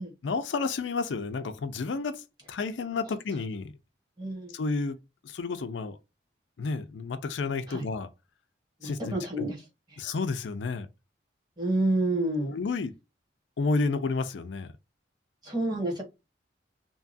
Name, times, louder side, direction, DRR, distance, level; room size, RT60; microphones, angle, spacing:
voice 1, 0.2-2.2 2.5-3.7 4.5-5.0 5.2-6.0 6.6-8.1 8.8-9.5 10.0-10.9 12.4-12.9 13.6-14.7, left 4 dB, 85° left, 0.4 m, -31 dB
voice 2, 4.2-4.5 7.7-7.8 8.8-9.6 9.9-10.0 11.6-12.5 15.4-16.0, right 1 dB, 25° right, 1.1 m, -29 dB
2.8 x 2.3 x 2.5 m
head